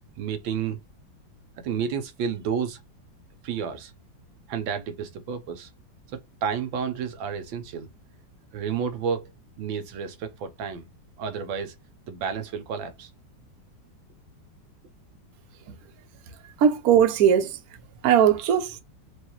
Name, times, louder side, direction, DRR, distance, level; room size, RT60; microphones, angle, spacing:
voice 1, 0.2-0.8 1.6-2.8 3.4-3.9 4.5-5.7 6.1-7.9 8.5-9.3 9.6-10.9 11.2-11.7 12.1-13.1, right 7 dB, 85° right, 1.5 m, -31 dB
voice 2, 16.6-17.6 18.0-18.8, right 8 dB, 60° right, 1.1 m, -19 dB
4.7 x 2.6 x 3.0 m
omnidirectional pair, 2.1 m